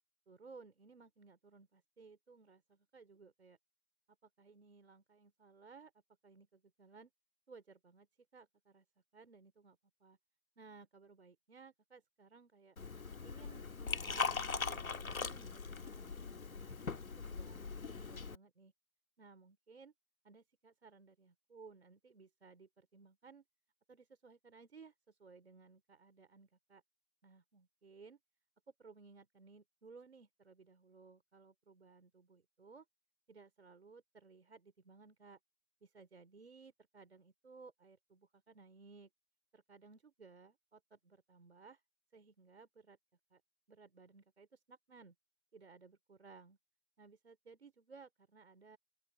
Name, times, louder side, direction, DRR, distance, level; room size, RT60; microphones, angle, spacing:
voice 1, 0.3-3.6 4.2-5.9 6.2-7.1 7.5-8.1 8.3-8.8 9.1-10.2 10.6-12.8 13.2-18.7 19.2-19.9 20.2-23.4 23.9-26.8 27.2-28.2 28.8-32.9 33.3-35.4 35.8-39.1 39.5-41.8 42.1-43.0 43.3-43.4 43.7-45.1 45.5-46.6 47.0-48.8, right 4 dB, 45° right, 4.4 m, -60 dB
Liquid, 12.8-18.4, left 4 dB, 65° left, 1.7 m, -41 dB
open air
figure-of-eight pair, 170°, 45 cm